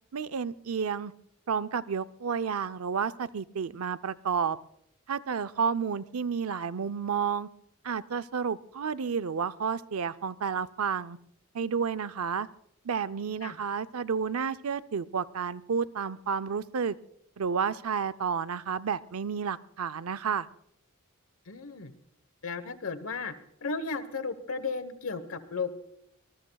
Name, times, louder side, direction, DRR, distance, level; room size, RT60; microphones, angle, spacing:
voice 1, 0.1-1.1 1.5-4.6 5.1-7.5 7.8-11.2 11.5-12.5 12.8-17.0 17.4-20.5, right 6 dB, 85° right, 13 dB, 0.5 m, -31 dB
voice 2, 21.5-21.9 22.4-23.3 23.6-25.7, left 4 dB, 75° left, 14 dB, 1.1 m, -34 dB
25.5 x 19.5 x 2.3 m, 0.73 s
head